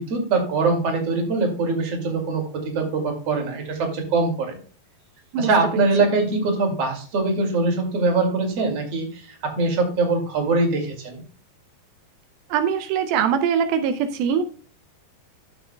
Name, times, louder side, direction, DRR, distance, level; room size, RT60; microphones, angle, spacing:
voice 1, 0.0-4.6 5.4-11.2, right 3 dB, 45° right, 1 dB, 3.2 m, -23 dB
voice 2, 5.3-5.9 12.5-14.4, right 7 dB, 85° right, 8 dB, 2.5 m, -22 dB
14.0 x 7.2 x 2.3 m, 0.40 s
omnidirectional pair, 4.2 m